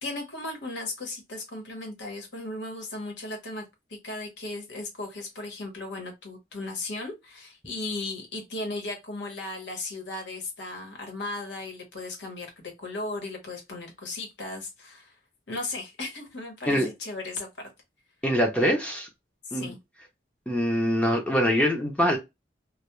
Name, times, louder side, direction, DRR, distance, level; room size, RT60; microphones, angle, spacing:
voice 1, 0.0-3.6 3.9-15.1 15.5-17.7 19.5-19.8, left 2 dB, 80° left, 1.0 m, -36 dB
voice 2, 18.2-19.1 19.5-19.7 20.5-22.2, equal, 5° left, 0.5 m, -24 dB
2.2 x 2.2 x 2.9 m
head